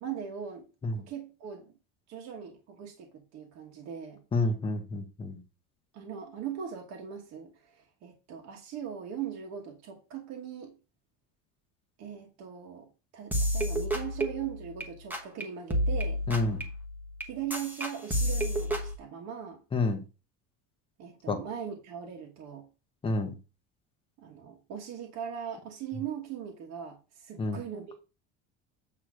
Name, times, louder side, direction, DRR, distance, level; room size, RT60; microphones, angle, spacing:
voice 1, 0.0-0.6 0.9-1.7 2.1-4.2 5.9-10.7 12.0-16.2 17.2-19.6 21.0-22.7 24.2-28.0, right 8 dB, 50° right, 1.3 m, -40 dB
voice 2, 4.3-5.4 16.3-16.6 19.7-20.0 21.3-21.4 23.0-23.4 27.4-27.6, left 2 dB, 15° left, 1.0 m, -29 dB
sound 1, 13.3-14.8 15.1-15.4 15.7-18.9, equal, 5° right, 1.2 m, -30 dB
8.5 x 3.1 x 6.2 m
cardioid pair, 160°, 34 cm